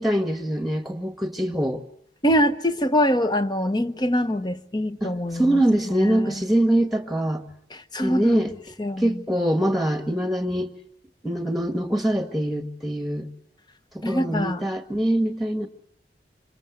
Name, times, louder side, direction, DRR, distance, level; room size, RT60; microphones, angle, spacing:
voice 1, 0.0-1.8 5.0-7.4 8.0-8.5 9.0-10.7 11.2-13.3 13.9-15.7, right 1 dB, ahead, 1.6 m, -24 dB
voice 2, 2.2-6.4 7.7-8.5 8.8-9.2 14.0-14.7, equal, 25° left, 1.1 m, -24 dB
26.5 x 26.0 x 8.0 m
head